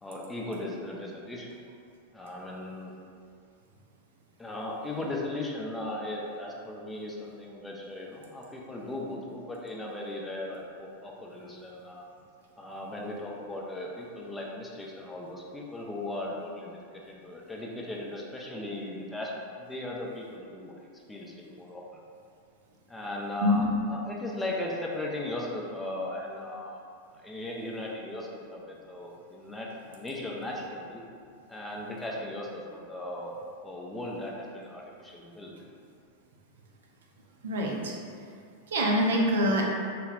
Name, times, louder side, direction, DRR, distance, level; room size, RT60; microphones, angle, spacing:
voice 1, 0.0-1.6 2.1-2.9 4.4-12.1 12.6-16.7 17.1-21.8 22.9-26.8 27.1-31.0 31.5-33.4 33.6-35.5, left 1 dB, 10° left, -3 dB, 0.4 m, -37 dB
voice 2, 37.4-38.0 38.7-39.6, equal, 70° right, -1 dB, 0.4 m, -25 dB
2.2 x 2.0 x 3.3 m, 2.3 s
figure-of-eight pair, 90°, 0 cm